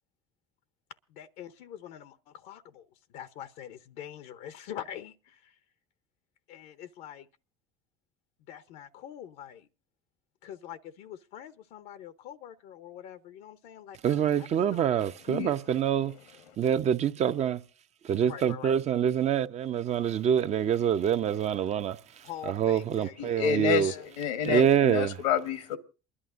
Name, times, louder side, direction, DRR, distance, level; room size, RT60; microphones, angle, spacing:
voice 1, 1.1-5.6 6.5-7.3 8.5-9.7 10.4-14.8 18.2-18.7 22.2-24.0, left 10 dB, 70° left, 0.8 m, -44 dB
voice 2, 14.0-17.6 18.0-23.9 24.4-25.2, right 9 dB, 45° right, 0.8 m, -26 dB
voice 3, 23.2-25.8, left 8 dB, 85° left, 1.3 m, -29 dB
28.5 x 11.0 x 2.5 m
hypercardioid pair, 75°, 15 cm